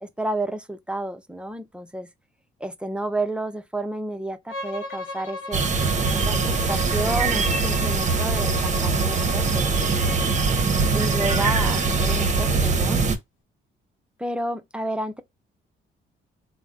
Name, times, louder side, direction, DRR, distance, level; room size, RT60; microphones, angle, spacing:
voice 1, 0.0-2.1 2.6-5.6 6.1-10.2 10.9-13.0 14.2-15.2, right 1 dB, 5° right, 0.5 m, -31 dB
Bowed string instrument, 4.5-12.5, left 3 dB, 85° left, 0.9 m, -35 dB
sound 1, 5.5-13.2, right 4 dB, 35° right, 0.7 m, -22 dB
3.4 x 2.0 x 3.6 m
cardioid pair, 90°, 20 cm